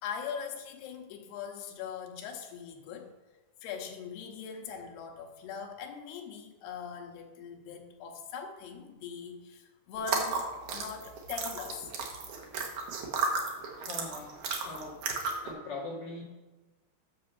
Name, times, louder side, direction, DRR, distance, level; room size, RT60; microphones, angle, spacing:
voice 1, 0.0-3.1 3.6-11.9, left 6 dB, 80° left, 3 dB, 2.9 m, -41 dB
sound 1, 10.0-15.5, right 4 dB, 65° right, 2.0 m, -34 dB
voice 2, 13.7-15.0 15.4-16.2, left 2 dB, 55° left, -4 dB, 1.7 m, -41 dB
8.7 x 6.7 x 5.6 m, 1.2 s
omnidirectional pair, 4.9 m